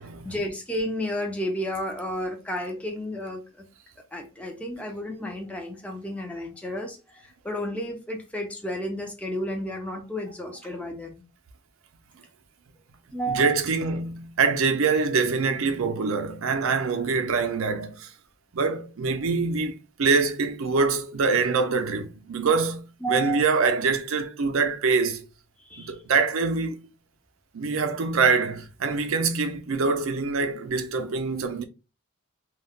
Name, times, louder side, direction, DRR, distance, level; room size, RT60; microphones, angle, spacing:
voice 1, 0.2-3.7 4.1-11.2 13.1-13.6 23.0-23.4 25.6-26.0, equal, 5° left, 0.5 m, -32 dB
voice 2, 13.3-18.1 18.5-25.3 25.8-26.8 27.5-31.6, right 4 dB, 75° right, 0.5 m, -24 dB
2.3 x 2.1 x 3.4 m
head